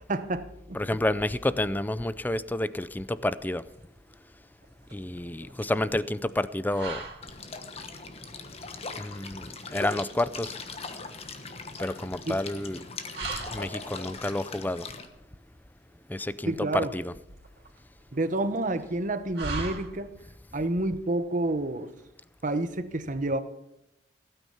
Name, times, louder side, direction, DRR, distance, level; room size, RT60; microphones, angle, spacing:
voice 1, 0.1-0.8 12.3-12.4 16.5-16.9 18.1-20.1 20.5-21.9 22.4-23.4, right 2 dB, 45° right, 11 dB, 1.0 m, -29 dB
voice 2, 0.7-3.6 4.9-7.1 9.0-10.6 11.8-12.8 13.5-14.9 16.1-17.1, left 1 dB, 10° left, 16 dB, 0.4 m, -30 dB
sound 1, 3.4-20.4, right 3 dB, 65° right, 3.0 m, -43 dB
sound 2, 7.2-15.0, left 4 dB, 35° left, 1.2 m, -40 dB
16.0 x 9.3 x 5.7 m, 0.84 s
head